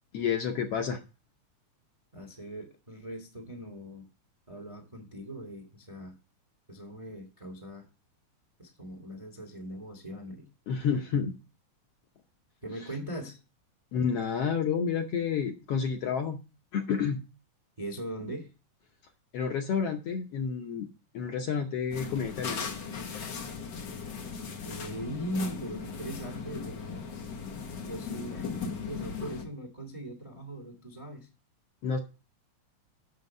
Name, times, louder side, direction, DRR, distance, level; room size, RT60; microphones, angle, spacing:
voice 1, 0.1-1.0 10.7-11.3 13.9-16.4 16.7-17.2 19.3-20.9 21.1-22.7 31.8-32.0, left 6 dB, 70° left, 4 dB, 1.5 m, -30 dB
voice 2, 2.1-4.1 4.5-6.1 6.7-7.8 8.6-10.5 12.6-13.4 17.8-18.5 24.6-27.1 27.8-31.3, right 1 dB, 30° right, 3 dB, 0.6 m, -40 dB
sound 1, 21.9-29.4, left 5 dB, 85° left, 0.9 m, -38 dB
8.0 x 6.4 x 5.3 m, 0.31 s
omnidirectional pair, 3.6 m